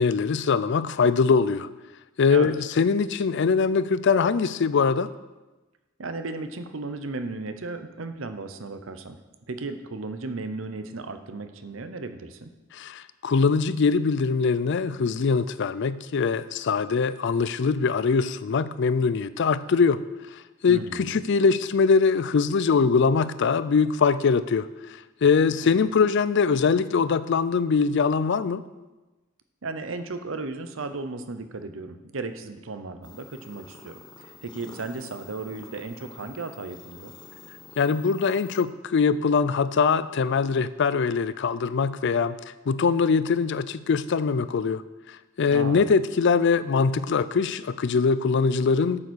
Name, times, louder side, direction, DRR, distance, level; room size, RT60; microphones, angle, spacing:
voice 1, 0.0-1.7 2.2-5.1 12.7-20.0 20.6-24.7 25.2-28.6 37.8-42.4 42.7-44.8 45.4-49.0, left 5 dB, 60° left, 15 dB, 0.4 m, -22 dB
voice 2, 6.0-9.2 9.5-12.5 20.7-21.2 25.6-25.8 29.6-37.1 45.4-45.9, right 3 dB, 70° right, 9 dB, 0.8 m, -35 dB
sound 1, 33.0-38.6, left 4 dB, 20° left, 1.0 m, -48 dB
8.7 x 7.1 x 6.3 m, 1.1 s
head